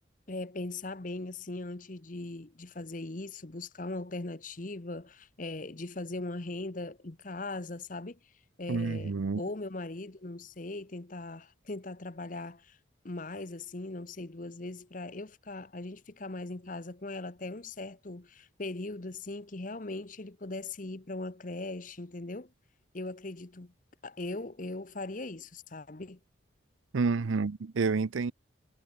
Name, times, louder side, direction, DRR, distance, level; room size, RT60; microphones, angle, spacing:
voice 1, 0.3-8.2 8.6-12.8 13.0-22.5 22.9-23.7 24.0-26.2, left 2 dB, 40° left, 1.0 m, -39 dB
voice 2, 8.7-9.4 26.9-28.3, right 4 dB, 85° right, 0.6 m, -29 dB
head